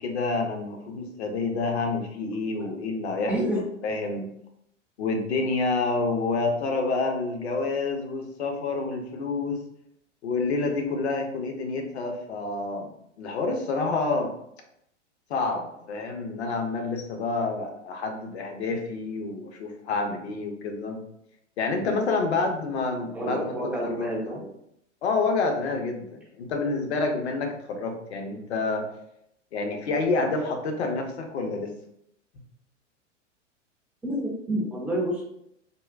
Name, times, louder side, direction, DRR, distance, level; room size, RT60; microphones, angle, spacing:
voice 1, 0.0-3.3 3.8-4.3 5.0-9.6 10.2-12.9 13.2-14.3 15.3-21.0 21.6-23.6 23.8-24.5 25.0-28.8 29.5-31.7, left 3 dB, 60° left, 3 dB, 0.8 m, -28 dB
voice 2, 3.3-3.7 23.1-24.4 34.0-35.2, equal, 5° right, -4 dB, 0.4 m, -28 dB
3.6 x 2.1 x 2.4 m, 0.75 s
figure-of-eight pair, 100°, 37 cm